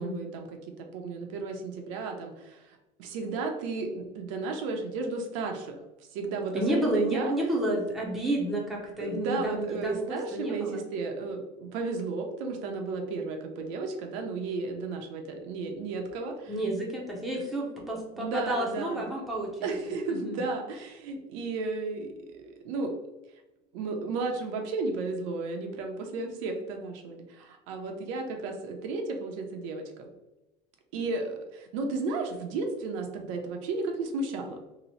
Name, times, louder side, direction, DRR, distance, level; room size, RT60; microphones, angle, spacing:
voice 1, 0.0-5.8 6.1-7.3 9.0-16.6 17.3-17.4 18.1-19.0 19.6-22.9 23.7-30.1 30.9-34.6, right 3 dB, 80° right, 3 dB, 0.7 m, -33 dB
voice 2, 6.5-10.8 16.5-19.5 20.1-20.4, right 1 dB, ahead, -3 dB, 0.5 m, -30 dB
2.9 x 2.0 x 4.0 m, 0.97 s
cardioid pair, 170°, 16 cm